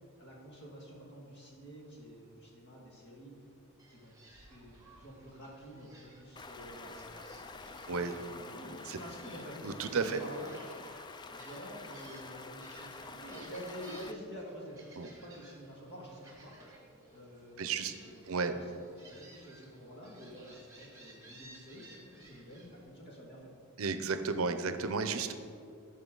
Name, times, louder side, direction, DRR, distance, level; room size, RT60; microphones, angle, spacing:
voice 1, 0.2-3.3 3.9-4.1 4.5-7.1 7.7-9.7 9.9-10.5 11.3-17.7 18.1-18.6 18.9-23.5, equal, 50° left, -3 dB, 2.0 m, -49 dB
Gull seagull, 3.8-22.9, right 2 dB, 15° right, 1.5 m, -57 dB
Stream, 6.4-14.1, left 3 dB, 20° left, 0.3 m, -48 dB
voice 2, 9.6-10.2 15.0-15.1 17.6-17.9 18.3-18.5 23.8-25.3, right 4 dB, 70° right, 9 dB, 0.6 m, -33 dB
14.0 x 5.6 x 3.9 m, 2.4 s
head